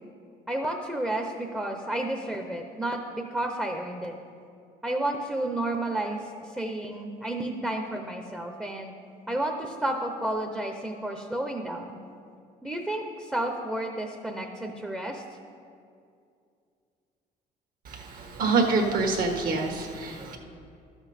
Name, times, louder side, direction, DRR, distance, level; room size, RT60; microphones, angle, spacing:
voice 1, 0.5-4.1 4.8-9.0 9.3-12.0 12.6-15.2, right 1 dB, 5° right, 3 dB, 0.7 m, -31 dB
voice 2, 17.8-20.4, right 3 dB, 60° right, 3 dB, 1.4 m, -26 dB
12.0 x 7.1 x 4.2 m, 2.4 s
cardioid pair, 110°, 17 cm